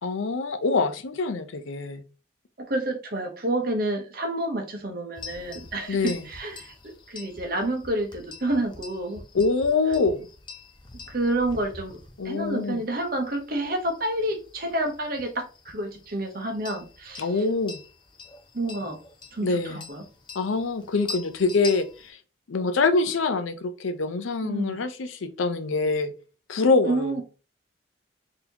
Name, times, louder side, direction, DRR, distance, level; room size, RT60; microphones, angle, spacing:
voice 1, 0.0-2.0 5.9-6.2 9.3-10.3 12.2-12.8 17.2-17.8 19.4-19.8 20.3-22.2 22.5-26.1 26.5-27.2, left 3 dB, 85° left, 0.5 m, -25 dB
voice 2, 2.6-9.2 11.1-12.0 12.2-17.4 18.5-19.0 19.3-20.0 24.4-24.8 26.8-27.2, right 1 dB, 50° right, 0.9 m, -29 dB
sound 1, 5.2-22.1, left 4 dB, 25° left, 0.4 m, -45 dB
4.1 x 2.8 x 2.8 m
head